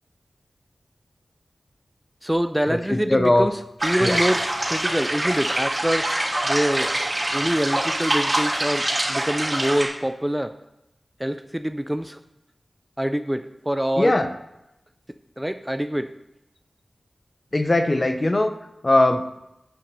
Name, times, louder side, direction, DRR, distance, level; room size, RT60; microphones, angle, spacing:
voice 1, 2.2-6.2 6.4-6.9 7.3-10.6 11.2-12.2 13.0-14.2 15.4-16.1, equal, 10° right, 9 dB, 0.4 m, -25 dB
voice 2, 3.1-3.5 4.0-4.2 14.0-14.3 17.5-18.5 18.8-19.2, left 2 dB, 35° left, 8 dB, 0.8 m, -19 dB
sound 1, 3.8-9.9, right 1 dB, 25° right, 3.0 m, -24 dB
10.0 x 5.8 x 5.3 m, 0.89 s
wide cardioid pair, 75°, 0 cm